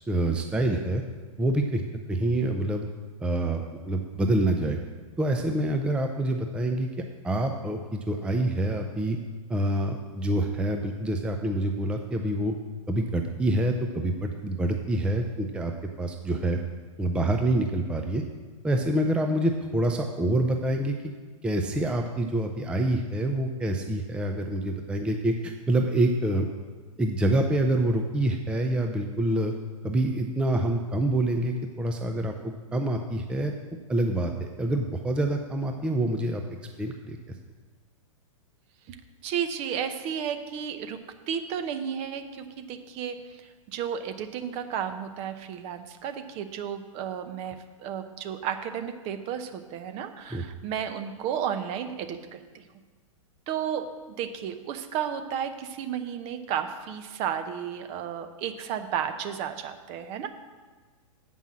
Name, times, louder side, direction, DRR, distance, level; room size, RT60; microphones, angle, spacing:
voice 1, 0.1-1.0 1.4-1.8 2.1-2.9 3.2-4.8 5.2-6.9 7.2-9.2 9.5-12.5 12.9-15.7 16.0-16.6 17.0-18.2 18.6-21.0 21.4-26.5 27.0-29.5 29.8-32.3 32.7-33.5 33.9-36.4 36.8-37.2 50.3-50.4, right 1 dB, 5° right, 4 dB, 0.5 m, -26 dB
voice 2, 39.2-52.7 53.5-60.3, right 8 dB, 35° right, 9 dB, 0.7 m, -33 dB
7.7 x 5.4 x 7.3 m, 1.4 s
hypercardioid pair, 120°, 18 cm